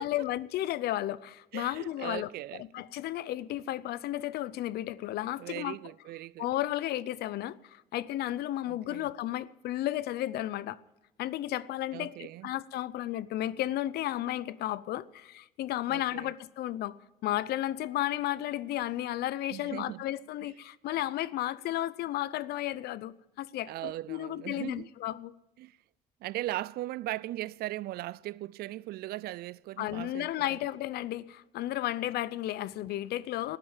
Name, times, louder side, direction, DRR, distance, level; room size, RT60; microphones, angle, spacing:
voice 1, 0.0-5.8 6.4-10.8 11.2-17.0 17.2-25.3 29.8-33.6, left 14 dB, 70° left, 0.6 m, -33 dB
voice 2, 1.5-2.6 5.4-6.5 8.7-9.1 11.9-12.5 15.9-16.3 19.5-20.0 20.4-20.5 23.7-24.9 25.6-25.8 26.2-30.6, right 16 dB, 65° right, 0.4 m, -38 dB
12.5 x 9.8 x 8.8 m
cardioid pair, 110°, 17 cm